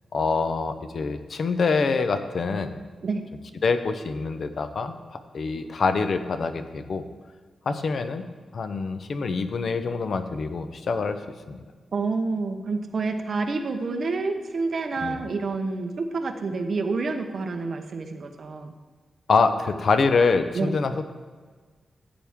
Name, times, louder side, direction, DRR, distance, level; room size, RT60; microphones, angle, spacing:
voice 1, 0.1-2.8 3.6-7.1 7.7-8.2 8.5-11.2 11.5-11.6 15.0-15.2 19.3-21.1, left 4 dB, 55° left, 9 dB, 0.7 m, -25 dB
voice 2, 11.9-18.7 20.5-20.7, right 3 dB, 50° right, 6 dB, 0.9 m, -28 dB
13.5 x 8.7 x 3.6 m, 1.5 s
wide cardioid pair, 145°, 0 cm